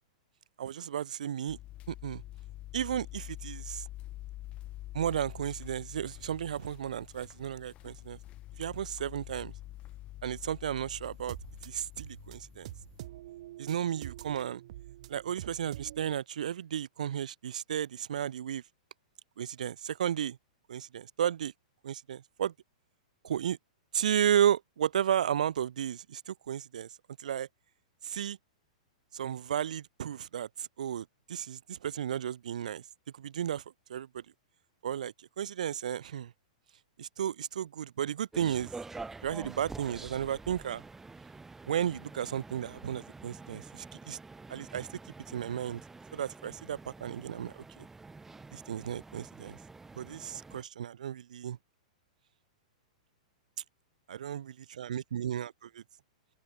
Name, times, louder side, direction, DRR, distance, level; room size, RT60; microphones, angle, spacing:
voice 1, 0.6-1.6 1.9-2.2 2.7-3.8 4.9-8.2 8.6-9.5 10.2-11.4 11.6-12.7 13.6-14.6 15.1-18.6 19.4-20.4 20.7-21.5 21.8-22.5 23.2-23.6 23.9-26.9 27.2-27.5 28.0-28.4 29.1-32.8 33.2-33.6 33.9-34.2 34.8-36.3 37.0-38.7 39.2-40.8 41.7-44.2 44.5-44.9 45.3-45.8 46.1-47.8 48.5-49.6 50.0-51.6 54.1-55.8, right 9 dB, 80° right, 0.9 m, -33 dB
sound 1, 1.5-13.1, left 15 dB, 30° left, 1.8 m, -46 dB
sound 2, 11.0-16.2, right 15 dB, 60° right, 3.7 m, -46 dB
sound 3, 38.3-50.6, right 3 dB, 10° right, 1.7 m, -48 dB
open air
hypercardioid pair, 140°, 4 cm